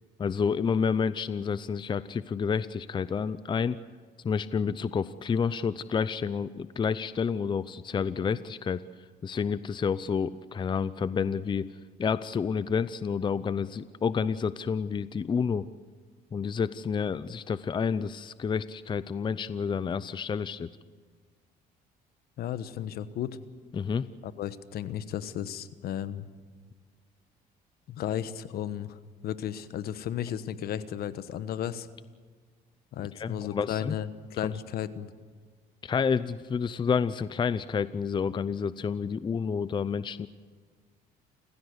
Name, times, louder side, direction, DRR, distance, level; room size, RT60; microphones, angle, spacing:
voice 1, 0.2-3.8 4.2-8.8 9.2-11.7 12.0-15.7 16.3-20.7 23.7-24.1 33.2-34.0 34.4-34.5 35.8-40.3, left 6 dB, 25° left, 15 dB, 0.6 m, -29 dB
voice 2, 22.4-23.4 24.2-26.3 27.9-31.9 32.9-35.1, left 10 dB, 65° left, 14 dB, 1.2 m, -34 dB
29.0 x 15.5 x 8.1 m, 1.5 s
cardioid pair, 110°, 17 cm